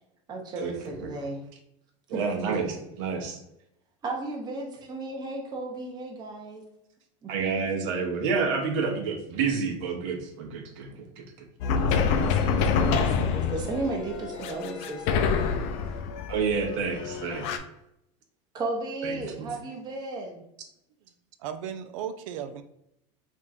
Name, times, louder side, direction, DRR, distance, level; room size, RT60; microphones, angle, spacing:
voice 1, 0.3-1.4 2.1-2.2 4.0-6.6 7.2-7.3 11.8-15.4 18.5-20.4, right 2 dB, 25° right, 0 dB, 0.9 m, -34 dB
voice 2, 2.1-2.6 3.0-3.4 7.3-11.2 12.6-12.8 16.3-17.5 19.0-19.5, right 5 dB, 70° right, 3 dB, 0.8 m, -29 dB
sound 1, 11.6-17.6, left 5 dB, 65° left, 0.5 m, -27 dB
voice 3, 21.4-22.6, right 8 dB, 85° right, 9 dB, 0.5 m, -35 dB
3.5 x 2.4 x 4.1 m, 0.81 s
supercardioid pair, 145°, 16 cm